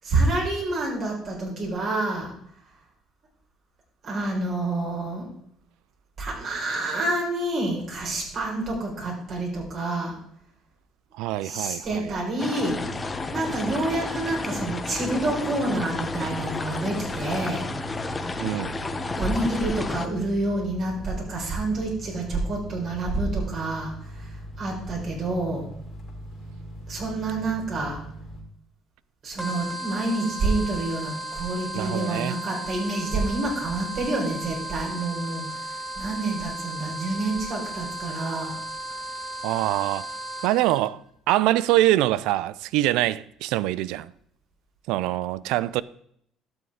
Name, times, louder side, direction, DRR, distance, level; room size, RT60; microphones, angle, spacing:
voice 1, 0.0-2.3 4.0-5.3 6.2-10.1 11.4-12.8 13.3-17.6 19.2-25.6 26.9-28.0 29.2-38.6, right 2 dB, 55° right, 4.2 m, -28 dB
voice 2, 11.2-12.1 18.4-18.7 31.7-32.3 39.4-40.1 40.4-41.0 41.3-44.1 44.9-45.8, right 15 dB, 80° right, 0.3 m, -24 dB
sound 1, 12.4-20.1, left 3 dB, 25° left, 0.8 m, -32 dB
sound 2, 12.7-28.4, right 1 dB, 50° left, 2.1 m, -41 dB
sound 3, 29.4-40.8, right 1 dB, 10° right, 1.7 m, -35 dB
12.0 x 6.9 x 3.6 m
supercardioid pair, 85°, 0 cm